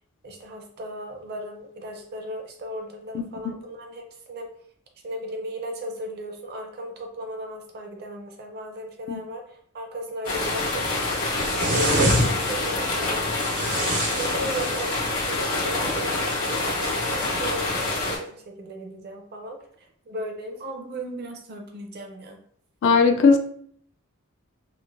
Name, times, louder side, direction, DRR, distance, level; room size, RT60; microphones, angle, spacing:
voice 1, 0.2-4.5 5.0-13.7 14.1-22.4, right 1 dB, 50° right, 3 dB, 0.5 m, -36 dB
voice 2, 3.1-3.5 9.1-9.2 22.8-23.4, left 4 dB, 60° left, 5 dB, 0.3 m, -19 dB
sound 1, 10.2-18.2, left 2 dB, 80° left, 1.2 m, -26 dB
sound 2, 11.4-12.7 13.4-15.2 16.2-16.9, right 1 dB, 85° right, 1.0 m, -26 dB
3.1 x 2.1 x 2.5 m, 0.62 s
head